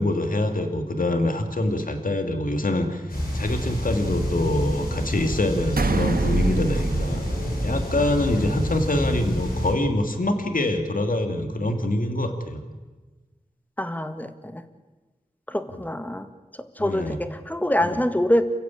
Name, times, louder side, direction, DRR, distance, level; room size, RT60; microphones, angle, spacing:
voice 1, 0.0-3.0 3.3-7.2 7.6-12.6 16.8-17.2 17.8-18.0, left 1 dB, 65° left, 6 dB, 2.7 m, -25 dB
sound 1, 3.1-9.7, equal, 80° left, 7.4 m, -28 dB
sound 2, 5.8-8.3, right 3 dB, 85° right, 1.6 m, -26 dB
voice 2, 13.8-14.6 15.5-16.3 16.8-18.4, left 1 dB, 10° left, 9 dB, 2.0 m, -25 dB
29.0 x 15.5 x 8.7 m, 1.2 s
wide cardioid pair, 45°, 15 cm